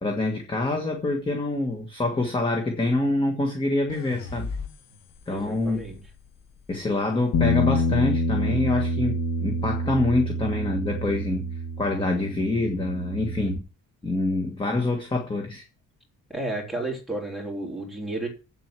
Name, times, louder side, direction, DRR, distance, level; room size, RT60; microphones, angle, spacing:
voice 1, 0.0-4.5 5.3-5.8 6.7-13.7 14.0-15.7, left 2 dB, 15° left, 1.5 m, -26 dB
sound 1, 3.9-7.1, left 4 dB, 90° left, 1.4 m, -39 dB
voice 2, 5.3-6.0 16.3-18.3, right 2 dB, ahead, 3.5 m, -32 dB
Bass guitar, 7.3-13.6, left 1 dB, 70° left, 1.5 m, -27 dB
8.3 x 7.8 x 5.9 m
wide cardioid pair, 170°, 32 cm